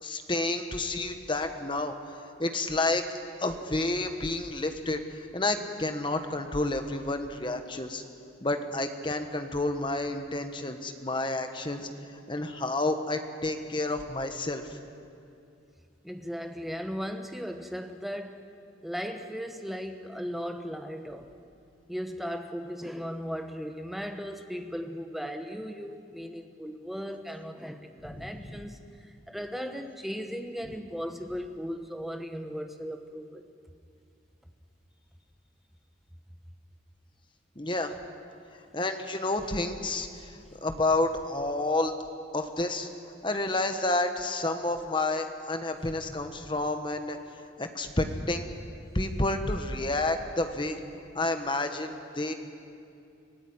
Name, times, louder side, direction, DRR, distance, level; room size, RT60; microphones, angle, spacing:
voice 1, 0.0-1.9 2.4-3.0 3.4-8.0 8.4-11.9 12.3-14.8 28.2-28.4 37.6-38.0 38.7-40.3 40.6-41.9 42.3-42.9 43.2-47.2 47.6-48.5 48.9-50.8 51.1-52.3, left 2 dB, 25° left, 6 dB, 1.3 m, -30 dB
voice 2, 16.0-18.5 18.8-21.4 21.9-33.5 40.5-40.6, equal, ahead, 5 dB, 1.2 m, -37 dB
24.5 x 16.0 x 9.7 m, 2.5 s
head